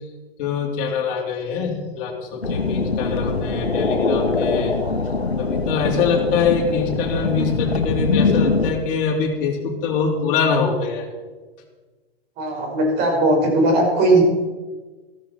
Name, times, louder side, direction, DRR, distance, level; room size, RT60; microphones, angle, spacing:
voice 1, 0.4-4.7 5.4-11.1, left 5 dB, 40° left, 0 dB, 3.2 m, -24 dB
sound 1, 2.4-8.7, left 3 dB, 90° left, 1.3 m, -22 dB
voice 2, 12.4-14.2, right 2 dB, 30° right, 1 dB, 4.7 m, -18 dB
14.5 x 13.5 x 4.3 m, 1.3 s
figure-of-eight pair, 110°, 31 cm